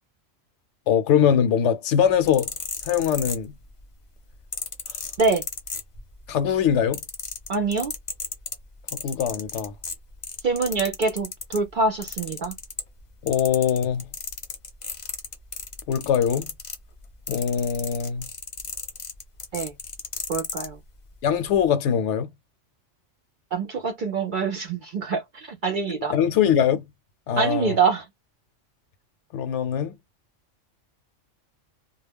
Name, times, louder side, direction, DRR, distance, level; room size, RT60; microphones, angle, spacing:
voice 1, 0.9-2.5 2.9-3.5 6.3-7.0 8.9-9.7 13.2-14.0 15.9-16.5 17.3-18.2 21.2-22.3 25.9-26.8 27.3-27.8 29.3-29.9, left 8 dB, 70° left, 0.9 m, -22 dB
sound 1, 2.1-3.8 4.5-6.3 6.6-11.6 12.0-13.0 13.3-20.7 21.4-21.6, left 4 dB, 40° left, 0.5 m, -34 dB
voice 2, 7.5-7.9 10.4-12.5 19.5-19.7 20.3-20.8 23.5-26.2 27.3-28.1, right 4 dB, 55° right, 0.6 m, -25 dB
2.2 x 2.1 x 3.4 m
omnidirectional pair, 1.3 m